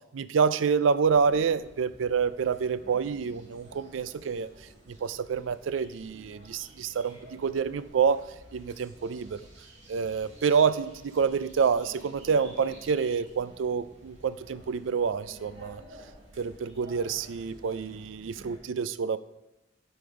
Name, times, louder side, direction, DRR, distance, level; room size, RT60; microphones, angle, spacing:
voice 1, 0.1-4.5 4.9-8.3 8.5-9.4 9.9-15.8 16.4-19.2, right 6 dB, 90° right, 15 dB, 0.4 m, -27 dB
sound 1, 1.0-18.6, right 1 dB, 70° right, 3.0 m, -52 dB
11.5 x 5.4 x 4.8 m, 0.96 s
head